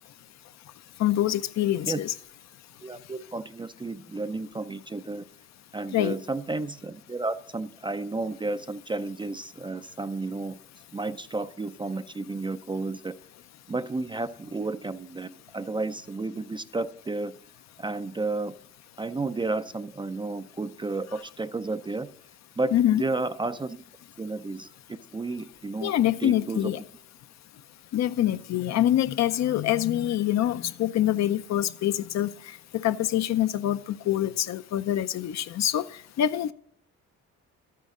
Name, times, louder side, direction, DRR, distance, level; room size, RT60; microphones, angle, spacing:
voice 1, 1.0-2.1 5.9-6.2 22.7-23.0 25.8-26.8 27.9-32.3 32.8-33.8 34.1-35.8 36.2-36.5, left 12 dB, 65° left, 0.6 m, -25 dB
voice 2, 2.8-5.2 5.7-10.6 10.9-13.2 13.7-17.4 17.8-18.5 19.0-22.1 22.6-23.8 24.2-25.9 26.2-26.8, right 3 dB, 15° right, 0.4 m, -32 dB
12.0 x 9.3 x 3.7 m
cardioid pair, 90°, 30 cm